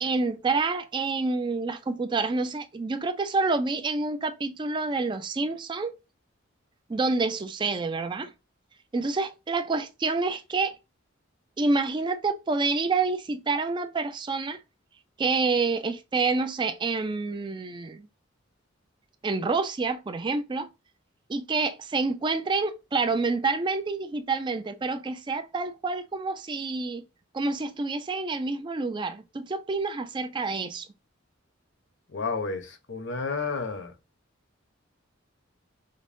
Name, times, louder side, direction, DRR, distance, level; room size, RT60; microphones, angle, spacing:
voice 1, 0.0-5.9 6.9-8.3 8.9-10.7 11.6-14.6 15.2-18.1 19.2-20.7 21.3-27.0 27.3-30.9, right 3 dB, 25° right, 0.4 m, -28 dB
voice 2, 32.1-33.9, left 4 dB, 65° left, 0.7 m, -31 dB
5.1 x 2.1 x 2.5 m
head